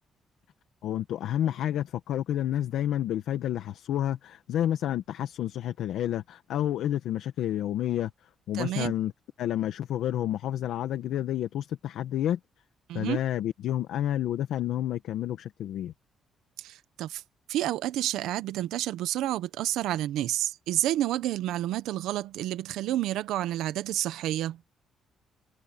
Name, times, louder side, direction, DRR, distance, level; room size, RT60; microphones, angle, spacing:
voice 1, 0.8-8.1 8.5-9.1 9.4-12.4 12.9-15.9, left 11 dB, 80° left, 1.4 m, -29 dB
voice 2, 8.5-8.9 12.9-13.2 16.6-17.2 17.5-24.6, right 13 dB, 90° right, 1.0 m, -29 dB
cardioid pair, 90°, 0 cm